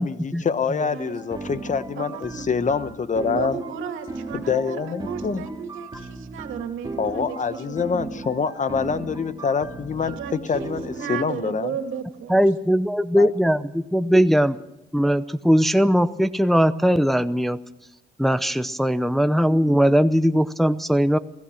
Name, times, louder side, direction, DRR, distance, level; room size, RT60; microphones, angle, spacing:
voice 1, 0.0-3.6 4.3-5.4 7.0-11.7 13.1-13.3, left 5 dB, 40° left, 13 dB, 1.1 m, -26 dB
sound 1, 1.1-11.1, right 3 dB, 20° right, 2.6 m, -36 dB
voice 2, 2.0-2.5 3.2-8.3 9.9-12.4, right 7 dB, 85° right, 6 dB, 2.5 m, -34 dB
voice 3, 12.3-14.6 14.9-17.6 18.2-21.2, equal, ahead, 11 dB, 0.7 m, -19 dB
28.0 x 16.0 x 6.4 m, 0.91 s
cardioid pair, 90°, 20 cm